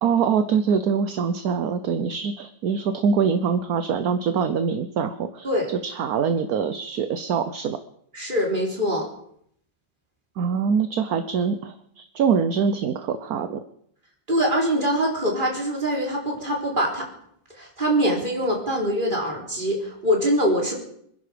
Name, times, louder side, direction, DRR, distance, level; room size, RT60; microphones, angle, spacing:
voice 1, 0.0-7.8 10.4-13.6, right 6 dB, 60° right, 10 dB, 1.3 m, -24 dB
voice 2, 8.1-9.1 14.3-17.1 17.5-20.8, equal, 25° right, -1 dB, 4.1 m, -23 dB
26.0 x 11.0 x 5.1 m, 0.68 s
omnidirectional pair, 1.9 m